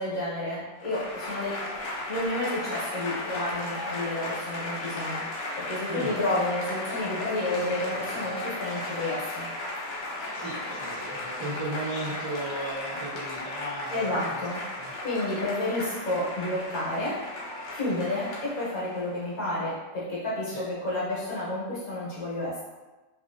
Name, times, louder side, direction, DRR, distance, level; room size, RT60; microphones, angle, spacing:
voice 1, 0.0-1.6 2.1-5.2 5.6-9.5 13.9-14.7 15.0-17.3 17.7-22.6, left 1 dB, 55° left, -7 dB, 1.2 m, -30 dB
Applause / Crowd, 0.8-19.3, left 2 dB, 75° left, 1.4 m, -35 dB
voice 2, 5.9-6.2 10.3-14.5 14.7-14.9 20.4-20.7, right 2 dB, 40° right, -11 dB, 0.3 m, -36 dB
2.9 x 2.6 x 2.5 m, 1.1 s
omnidirectional pair, 2.0 m